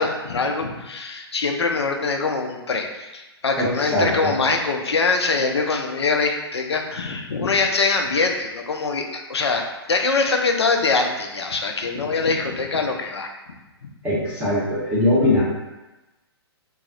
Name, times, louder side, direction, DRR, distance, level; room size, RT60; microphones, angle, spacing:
voice 1, 0.0-13.3 13.8-13.9, left 4 dB, 75° left, 3 dB, 0.4 m, -23 dB
voice 2, 3.6-4.3 14.0-15.4, left 1 dB, 10° right, -8 dB, 0.6 m, -21 dB
2.3 x 2.0 x 3.7 m, 1.1 s
figure-of-eight pair, 120°, 14 cm